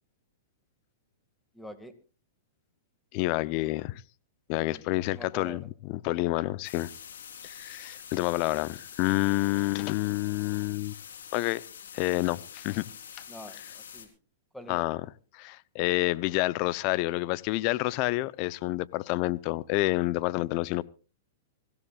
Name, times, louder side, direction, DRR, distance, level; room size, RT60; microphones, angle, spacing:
voice 1, 1.5-1.9 4.7-4.8 5.1-5.7 13.3-14.1 14.5-14.9, equal, 5° left, 2.1 m, -45 dB
voice 2, 3.1-4.0 4.5-5.6 5.9-6.9 7.4-10.9 11.3-11.6 11.9-12.9 14.7-15.0 15.3-20.8, left 19 dB, 45° left, 0.7 m, -28 dB
sound 1, 6.6-14.1, left 8 dB, 80° left, 3.9 m, -46 dB
25.0 x 16.0 x 2.5 m
hypercardioid pair, 120°, 0 cm